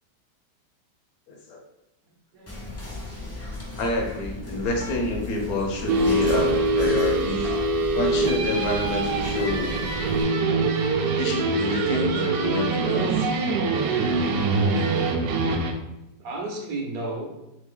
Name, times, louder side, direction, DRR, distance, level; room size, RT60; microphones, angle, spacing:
voice 1, 1.3-1.6 3.8-7.4 7.9-9.8 11.2-13.3, left 1 dB, 65° left, 1 dB, 1.1 m, -27 dB
voice 2, 2.3-3.4 16.2-17.3, right 2 dB, 65° right, 0 dB, 1.1 m, -34 dB
Whispering, 2.5-10.2, left 2 dB, 20° left, 0.3 m, -36 dB
sound 1, 5.9-15.7, right 3 dB, 85° right, 1.2 m, -24 dB
3.4 x 3.3 x 3.6 m, 0.90 s
omnidirectional pair, 1.8 m